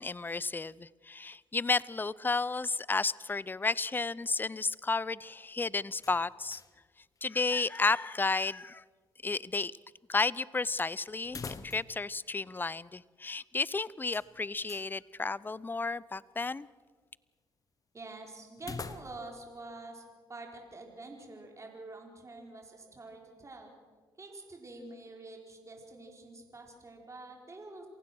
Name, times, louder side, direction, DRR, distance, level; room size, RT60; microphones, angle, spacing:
voice 1, 0.0-6.6 7.2-8.8 9.2-9.7 10.1-16.7, left 3 dB, 20° left, 0.6 m, -32 dB
sound 1, 6.0-6.9 7.2-7.3 11.2-12.1 12.4-12.5 14.1-14.9 18.6-19.4, left 4 dB, 35° left, 1.4 m, -44 dB
voice 2, 17.9-20.0 20.3-23.7 24.2-27.9, right 2 dB, 30° right, 4.9 m, -47 dB
27.5 x 16.0 x 6.3 m
hypercardioid pair, 55°, 10 cm